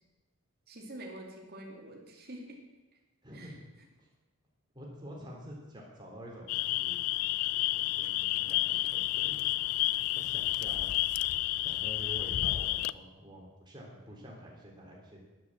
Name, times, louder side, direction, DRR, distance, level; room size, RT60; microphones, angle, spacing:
voice 1, 0.7-2.6 3.3-3.5, right 1 dB, 45° right, 0 dB, 2.6 m, -46 dB
voice 2, 3.2-3.6 4.0-4.1 4.7-7.0 7.6-9.5 9.9-10.9 11.3-15.2, equal, 20° right, -2 dB, 3.3 m, -48 dB
sound 1, 6.5-12.9, left 16 dB, 85° left, 0.4 m, -30 dB
10.5 x 9.7 x 7.5 m, 1.1 s
head